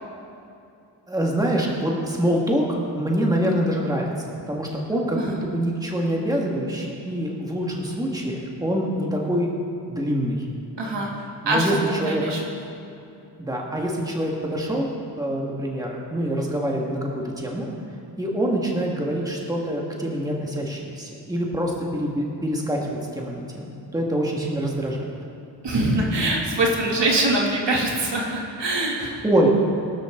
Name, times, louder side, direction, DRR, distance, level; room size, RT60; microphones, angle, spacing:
voice 1, 1.1-4.1 4.5-9.5 9.9-10.4 11.4-11.7 12.0-12.2 13.4-14.9 15.2-17.7 18.2-25.0 29.2-29.5, equal, 10° right, -2 dB, 1.8 m, -25 dB
voice 2, 10.8-11.1 11.5-11.8 12.0-12.7 25.6-29.2, right 2 dB, 75° right, -2 dB, 2.6 m, -23 dB
22.5 x 13.0 x 3.8 m, 2.8 s
wide cardioid pair, 175°, 43 cm